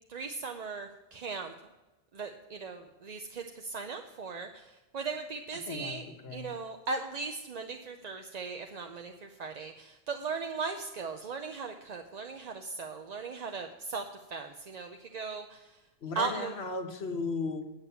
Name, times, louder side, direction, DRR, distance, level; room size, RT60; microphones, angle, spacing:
voice 1, 0.1-1.5 2.1-6.0 6.3-15.8 16.1-16.5, right 4 dB, 45° right, 5 dB, 0.7 m, -38 dB
voice 2, 5.7-6.0 6.2-6.5 16.0-17.7, left 4 dB, 90° left, 5 dB, 1.4 m, -35 dB
9.1 x 8.5 x 5.6 m, 1.1 s
omnidirectional pair, 1.0 m